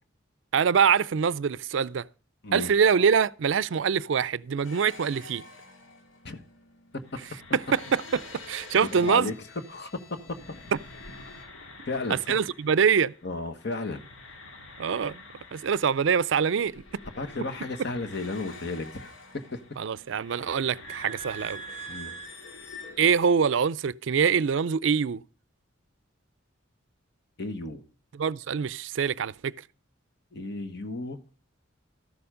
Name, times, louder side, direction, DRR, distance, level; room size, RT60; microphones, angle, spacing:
voice 1, 0.5-2.1 2.5-5.4 7.5-9.3 12.1-13.1 14.8-15.2 15.5-16.8 19.8-21.6 23.0-25.2 28.1-29.5, right 6 dB, 65° right, 0.4 m, -24 dB
sound 1, 4.6-13.3 13.5-23.3, equal, 75° left, 2.0 m, -46 dB
voice 2, 8.9-9.3 9.7-10.4 11.9-12.4 13.2-14.0 17.2-19.1 19.5-19.6 21.9-22.1 27.4-27.8 30.3-31.2, left 3 dB, 60° left, 1.3 m, -33 dB
13.5 x 7.0 x 4.9 m
head